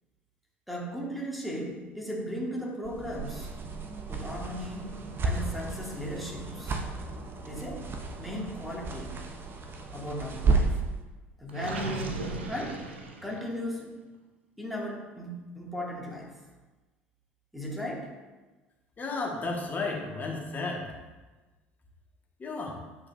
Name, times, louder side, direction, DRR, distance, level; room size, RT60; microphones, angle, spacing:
voice 1, 0.7-3.5 4.1-5.0 5.2-6.8 7.4-7.8 8.2-9.2 9.9-10.8 11.4-12.2 12.5-12.8 13.2-14.0 14.6-16.4 17.5-18.1, equal, ahead, -2 dB, 1.7 m, -36 dB
sound 1, 2.8-10.9, right 4 dB, 35° right, 0.8 m, -32 dB
Gurgling, 11.5-13.6, right 3 dB, 85° right, 0.6 m, -37 dB
voice 2, 19.0-20.9 22.4-22.8, left 3 dB, 30° left, -1 dB, 1.5 m, -33 dB
7.9 x 4.8 x 2.6 m, 1.2 s
figure-of-eight pair, 65°, 6 cm